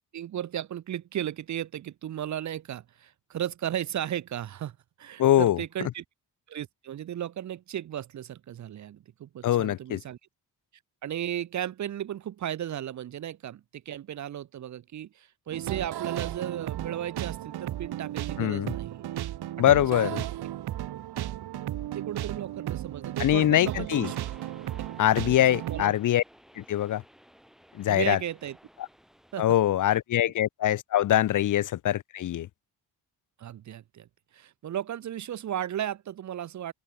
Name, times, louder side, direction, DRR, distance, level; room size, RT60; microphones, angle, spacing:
voice 1, 0.0-6.0 6.5-10.2 11.0-19.1 19.7-20.2 21.9-24.2 25.4-25.9 27.9-28.6 29.3-29.5 33.4-34.1 34.3-36.7, right 11 dB, 45° right, 0.6 m, -35 dB
voice 2, 5.2-5.6 9.4-10.0 18.4-18.7 19.6-20.2 23.2-24.1 25.0-26.2 26.6-27.0 27.8-28.2 29.4-32.5, left 12 dB, 50° left, 0.5 m, -23 dB
sound 1, 15.5-25.8, right 13 dB, 70° right, 1.1 m, -35 dB
sound 2, 24.0-29.4, equal, ahead, 5.0 m, -54 dB
open air
wide cardioid pair, 175°, 40 cm